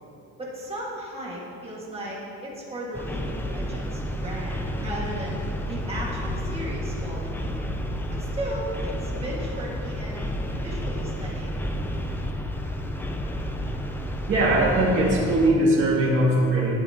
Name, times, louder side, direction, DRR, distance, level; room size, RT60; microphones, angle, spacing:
voice 1, 0.4-5.4 5.7-7.5 8.1-10.3 10.6-11.6, right 1 dB, 20° right, -5 dB, 1.7 m, -35 dB
sound 1, 2.9-15.5, equal, 5° left, 0.4 m, -31 dB
voice 2, 14.3-16.7, right 1 dB, 40° right, -6 dB, 2.2 m, -20 dB
17.5 x 8.3 x 2.9 m, 2.8 s
cardioid pair, 180°, 32 cm